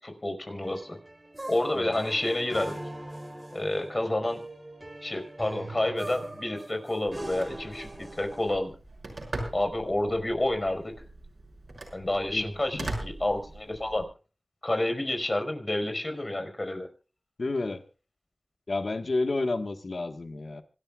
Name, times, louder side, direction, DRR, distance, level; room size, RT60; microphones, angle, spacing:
voice 1, 0.0-1.0 1.5-2.8 3.5-4.4 5.0-8.7 9.5-10.9 11.9-14.0 14.6-16.9, left 1 dB, 40° left, 6 dB, 5.2 m, -29 dB
sound 1, 0.6-8.6, right 1 dB, 35° right, 4.4 m, -41 dB
Telephone, 7.1-14.0, right 2 dB, 75° right, 6.1 m, -41 dB
voice 2, 17.4-17.8 18.7-20.6, left 3 dB, 75° left, 8 dB, 1.5 m, -30 dB
26.0 x 13.0 x 2.4 m, 0.36 s
cardioid pair, 40°, 0 cm